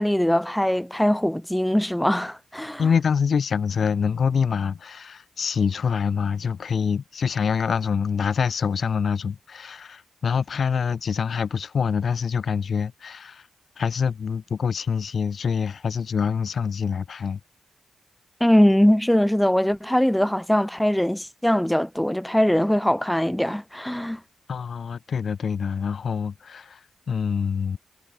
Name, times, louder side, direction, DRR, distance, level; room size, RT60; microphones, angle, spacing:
voice 1, 0.0-2.8 18.4-24.2, equal, 5° left, 0.4 m, -21 dB
voice 2, 2.8-13.5 13.8-17.4 24.5-27.8, left 6 dB, 65° left, 0.7 m, -25 dB
cardioid pair, 55°, 0 cm